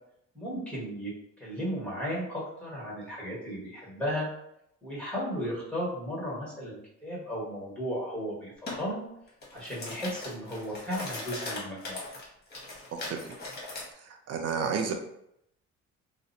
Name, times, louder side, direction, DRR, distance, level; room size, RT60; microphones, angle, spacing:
voice 1, 0.3-1.1 1.4-4.3 4.8-9.0 9.5-12.1, equal, 5° left, -5 dB, 1.4 m, -35 dB
sound 1, 8.7-8.8 9.3-13.9, left 2 dB, 35° left, 1.0 m, -39 dB
voice 2, 14.3-14.9, right 6 dB, 55° right, 4 dB, 0.5 m, -30 dB
2.4 x 2.2 x 2.6 m, 0.77 s
cardioid pair, 90°, 30 cm